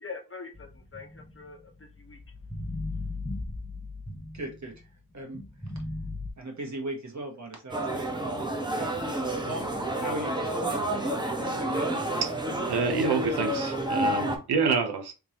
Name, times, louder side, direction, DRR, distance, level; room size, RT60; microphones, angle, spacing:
voice 1, 0.0-2.2, left 4 dB, 35° left, 0.9 m, -44 dB
sound 1, 0.5-4.9 5.3-6.3, left 2 dB, 5° left, 1.2 m, -37 dB
voice 2, 4.3-4.9 5.1-5.7 6.4-9.0 9.3-12.0, right 2 dB, 45° right, 1.4 m, -39 dB
sound 2, 7.7-14.4, right 1 dB, 10° right, 0.9 m, -29 dB
voice 3, 12.7-15.1, right 5 dB, 75° right, 0.7 m, -27 dB
3.6 x 3.0 x 2.9 m
cardioid pair, 50°, 40 cm